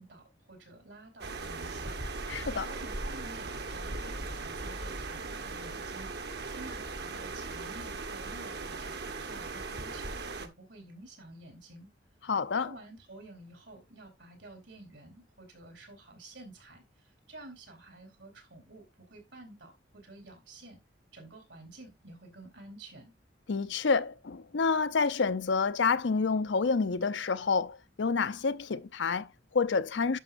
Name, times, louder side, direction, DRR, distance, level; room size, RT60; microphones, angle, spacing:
voice 1, 0.0-11.9 12.5-20.8 21.1-23.1, right 2 dB, 80° right, 4.0 m, -51 dB
sound 1, 1.2-10.5, right 3 dB, 65° right, 1.2 m, -38 dB
voice 2, 2.3-2.7 12.3-12.7 23.5-30.2, left 4 dB, 80° left, 0.6 m, -28 dB
11.0 x 6.1 x 2.6 m
head